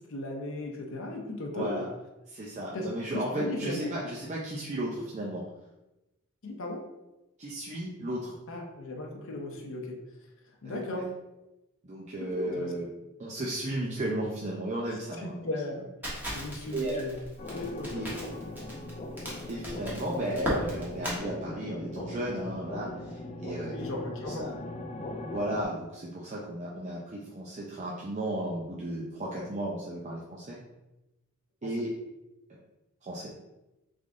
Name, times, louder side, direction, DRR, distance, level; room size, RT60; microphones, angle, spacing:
voice 1, 0.1-1.9 2.7-3.9 6.4-6.8 8.5-10.0 10.6-11.1 12.2-12.7 14.9-15.9 16.3-17.2 17.5-18.1 23.7-24.5 31.6-31.9, left 2 dB, 65° left, 1 dB, 0.7 m, -36 dB
voice 2, 1.5-1.9 2.3-5.4 7.4-8.3 10.6-11.0 11.8-12.9 13.2-15.4 16.7-17.0 17.9-18.1 19.5-23.9 24.4-24.5 25.3-30.6 31.6-31.9 32.5-32.6 33.0-33.3, right 1 dB, 35° right, -4 dB, 0.6 m, -34 dB
Crackle, 16.0-21.2, equal, 10° right, 1.2 m, -37 dB
sound 1, 17.4-25.6, left 1 dB, 30° left, 0.4 m, -39 dB
3.8 x 3.4 x 3.7 m, 0.98 s
head